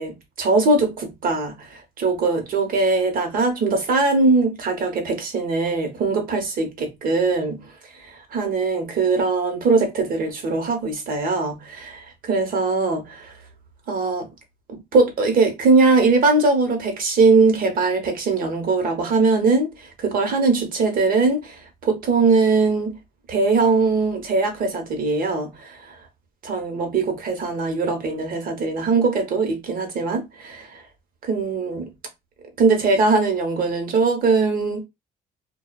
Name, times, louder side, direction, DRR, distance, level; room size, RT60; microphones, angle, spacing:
voice 1, 0.0-7.7 8.3-13.3 13.9-14.3 14.7-19.7 20.0-23.0 23.3-25.8 26.4-30.8 31.2-31.9 32.6-34.8, right 3 dB, 55° right, 1.0 m, -21 dB
2.4 x 2.3 x 2.3 m
cardioid pair, 110°, 17 cm